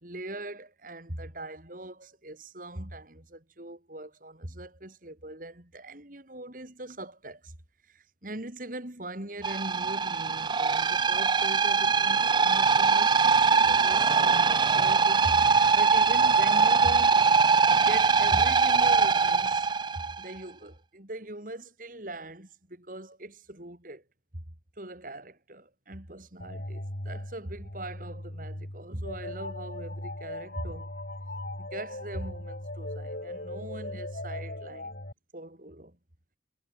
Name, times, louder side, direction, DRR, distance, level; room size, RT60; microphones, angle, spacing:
voice 1, 0.0-7.5 7.9-17.2 17.8-19.7 19.9-24.0 24.3-24.4 24.8-30.9 31.6-34.9 35.3-36.0, right 1 dB, 45° right, 3.4 m, -41 dB
sound 1, 9.4-20.2, right 5 dB, 25° right, 0.4 m, -22 dB
sound 2, 26.4-35.1, left 1 dB, 50° left, 3.9 m, -39 dB
head